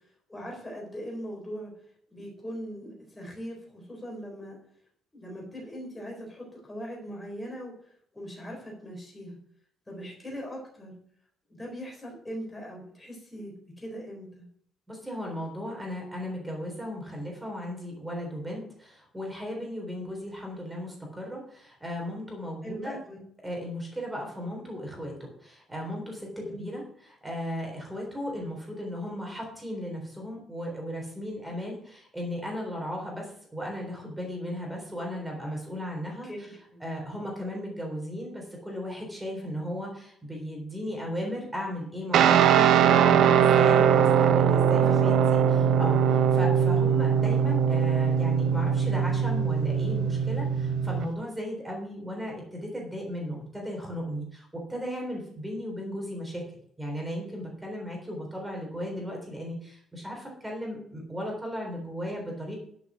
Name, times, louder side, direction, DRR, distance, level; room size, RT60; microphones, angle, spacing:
voice 1, 0.3-1.7 2.1-4.6 5.1-7.7 8.1-9.4 9.9-10.9 11.5-14.4 22.6-23.2 26.4-26.6 36.2-36.8 44.8-45.5, equal, 10° left, -1 dB, 3.9 m, -40 dB
voice 2, 14.9-23.0 23.4-36.5 36.8-45.4 45.8-56.4 56.8-62.6, equal, 5° right, 0 dB, 3.7 m, -36 dB
Guitar, 42.1-51.1, right 8 dB, 60° right, 0.9 m, -21 dB
11.0 x 6.9 x 6.2 m, 0.65 s
cardioid pair, 175°, 0 cm